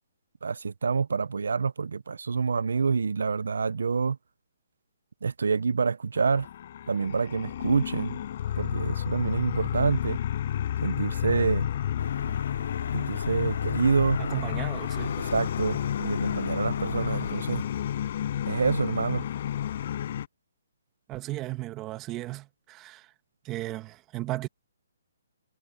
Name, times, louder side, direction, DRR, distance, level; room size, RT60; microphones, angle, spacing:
voice 1, 0.4-4.2 5.2-6.5 6.9-8.2 8.6-10.2 10.8-11.7 12.9-14.2 15.2-17.6 18.5-19.3, right 5 dB, 80° right, 0.5 m, -27 dB
sound 1, 6.2-20.3, left 10 dB, 45° left, 5.1 m, -31 dB
sound 2, 12.0-17.3, left 5 dB, 85° left, 3.4 m, -37 dB
voice 2, 14.2-15.2 21.1-23.1 23.4-24.5, right 17 dB, 15° right, 1.6 m, -35 dB
hypercardioid pair, 165°, 0 cm